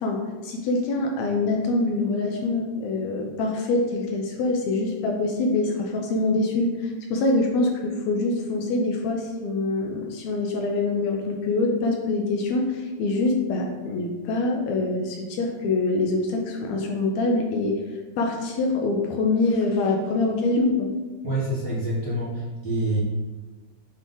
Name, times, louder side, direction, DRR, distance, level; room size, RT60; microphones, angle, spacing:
voice 1, 0.0-17.8 18.2-20.9, left 2 dB, 75° left, 1 dB, 1.9 m, -25 dB
voice 2, 21.2-23.0, right 1 dB, 45° right, -8 dB, 1.6 m, -27 dB
7.4 x 3.3 x 3.8 m, 1.3 s
omnidirectional pair, 3.3 m